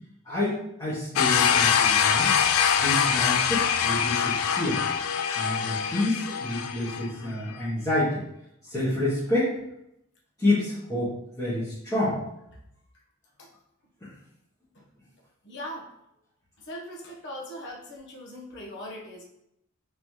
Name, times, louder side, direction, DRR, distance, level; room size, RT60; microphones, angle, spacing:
voice 1, 0.2-2.3 2.8-4.8 5.3-8.2 8.7-9.6 10.4-12.2 14.0-14.1, left 1 dB, 15° left, -12 dB, 1.5 m, -28 dB
sound 1, 1.2-7.1, left 7 dB, 75° left, 0.3 m, -24 dB
voice 2, 15.4-15.9 16.6-19.2, equal, 55° left, -1 dB, 1.0 m, -40 dB
3.7 x 3.7 x 3.1 m, 0.79 s
head